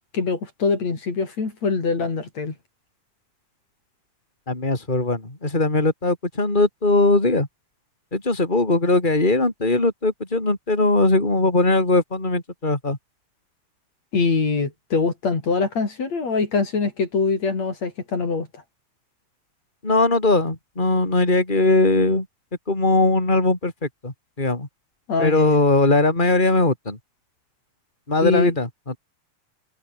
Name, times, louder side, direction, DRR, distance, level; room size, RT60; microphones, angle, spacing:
voice 1, 0.1-2.5 14.1-18.6 25.1-25.6 28.2-28.5, left 4 dB, 60° left, 5.7 m, -23 dB
voice 2, 4.5-7.5 8.1-13.0 19.8-22.3 22.7-23.7 24.0-24.7 25.2-27.0 28.1-28.7, left 2 dB, 15° left, 5.1 m, -20 dB
omnidirectional pair, 3.4 m